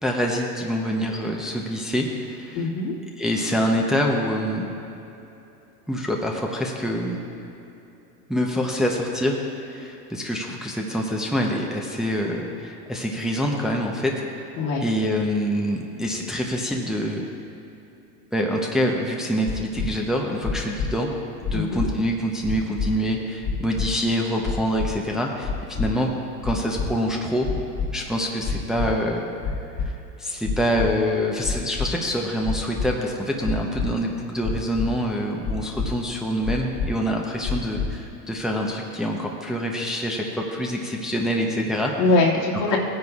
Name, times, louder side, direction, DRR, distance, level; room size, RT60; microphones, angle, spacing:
voice 1, 0.0-2.6 3.2-4.6 5.9-7.2 8.3-14.1 14.8-17.3 18.3-21.1 21.5-25.5 25.8-26.1 26.4-27.5 27.9-29.2 29.8-41.9 42.7-42.8, equal, ahead, -1 dB, 0.8 m, -25 dB
voice 2, 2.5-3.0 14.6-14.9 21.5-21.9 42.0-42.8, left 3 dB, 85° left, -5 dB, 2.5 m, -22 dB
sound 1, 19.5-19.9 20.4-20.9 21.4-21.9 22.4-22.9 23.4-23.9 24.4-24.9 25.4-25.9 26.4-26.9 27.4-27.9 28.4-28.9 29.4-29.9 30.4-30.9 31.4-31.9 32.4-32.9 33.4-33.9 34.4-34.9 35.4-35.9 36.4-36.9 37.4-37.9, left 5 dB, 50° left, 1.7 m, -26 dB
16.5 x 9.5 x 2.4 m, 2.9 s
supercardioid pair, 115°, 47 cm